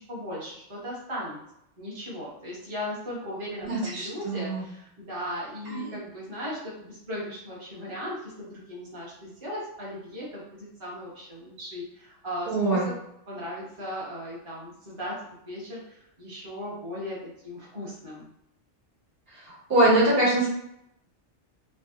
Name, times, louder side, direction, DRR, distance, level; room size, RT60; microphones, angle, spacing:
voice 1, 0.0-1.4 1.8-13.0 13.3-18.3, equal, 25° right, -6 dB, 0.9 m, -37 dB
voice 2, 3.6-4.6 5.7-5.9 12.5-12.9 19.5-20.5, right 1 dB, 50° right, -6 dB, 1.3 m, -23 dB
3.3 x 2.7 x 2.7 m, 0.77 s
omnidirectional pair, 1.3 m